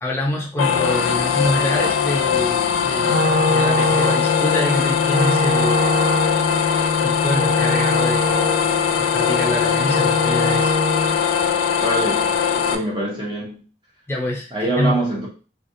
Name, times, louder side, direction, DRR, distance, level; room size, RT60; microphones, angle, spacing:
voice 1, 0.0-5.9 7.0-8.4 9.0-10.7 14.1-15.0, left 1 dB, 10° left, 0.7 m, -25 dB
sound 1, 0.6-12.7, left 7 dB, 80° left, 0.4 m, -20 dB
Wind instrument woodwind instrument, 3.0-11.2, left 2 dB, 70° right, 1.3 m, -23 dB
voice 2, 11.8-13.6 14.5-15.3, right 1 dB, 25° right, 1.0 m, -24 dB
3.3 x 2.4 x 2.7 m
head